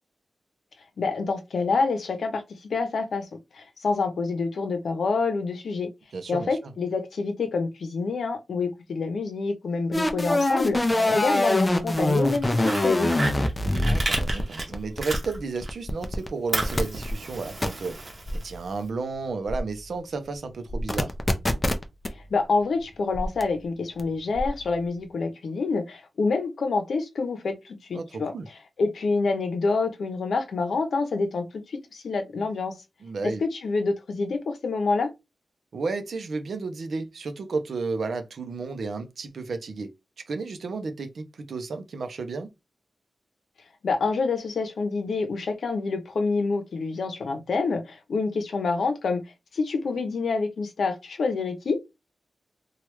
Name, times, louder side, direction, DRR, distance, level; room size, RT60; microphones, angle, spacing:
voice 1, 1.0-2.4 2.7-5.9 6.3-13.1 22.3-28.3 28.8-32.7 33.4-35.1 43.8-49.2 49.5-51.8, left 4 dB, 75° left, 0.7 m, -27 dB
voice 2, 6.1-6.6 10.9-11.2 13.8-18.0 18.3-21.1 27.9-28.5 33.0-33.4 35.7-39.9 40.3-42.5, right 4 dB, 70° right, 0.6 m, -32 dB
sound 1, 9.9-16.3 16.5-17.1 17.6-17.7 18.3-18.5 19.5-19.8 20.7-22.1 23.1-23.4 24.0-24.1 24.4-24.7, left 1 dB, 20° left, 0.5 m, -24 dB
Fire, 11.8-15.7 16.0-18.8, right 2 dB, 45° right, 0.9 m, -33 dB
3.1 x 2.3 x 3.1 m
wide cardioid pair, 115°, 0 cm